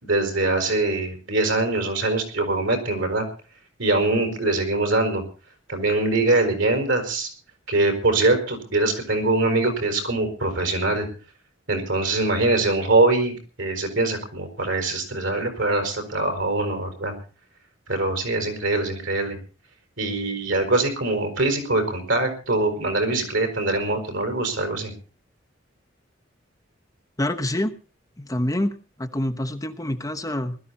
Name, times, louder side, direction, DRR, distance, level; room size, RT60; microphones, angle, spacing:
voice 1, 0.0-3.3 3.8-5.2 5.7-7.3 7.7-11.1 11.7-17.1 17.9-19.4 20.0-24.9, right 2 dB, 75° right, 5 dB, 5.2 m, -23 dB
voice 2, 27.2-27.7 28.2-28.7 29.0-30.6, left 1 dB, 20° left, 6 dB, 1.0 m, -26 dB
20.5 x 13.0 x 4.2 m, 0.35 s
head